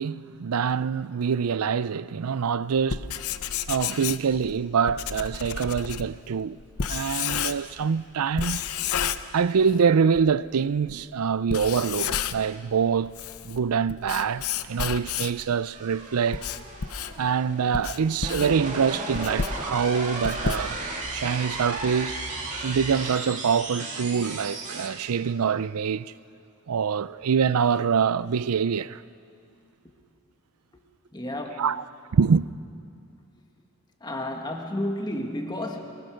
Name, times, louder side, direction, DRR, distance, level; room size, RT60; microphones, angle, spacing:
voice 1, 0.0-3.1 3.7-6.6 6.9-8.6 9.3-13.1 13.4-16.4 17.2-20.8 21.1-22.2 22.6-26.1 26.7-29.0 31.6-31.8 32.1-32.5, right 6 dB, 90° right, 0.5 m, -25 dB
Writing, 2.8-7.8 8.4-9.8 10.1-10.2 10.9-11.0 11.4-12.6 13.0-15.5 16.0-21.1, left 7 dB, 85° left, 0.7 m, -31 dB
sound 1, 15.7-24.9, right 2 dB, 35° right, 2.5 m, -35 dB
voice 2, 31.1-31.7 34.0-35.8, left 1 dB, 20° left, 1.8 m, -31 dB
23.0 x 20.0 x 6.4 m
head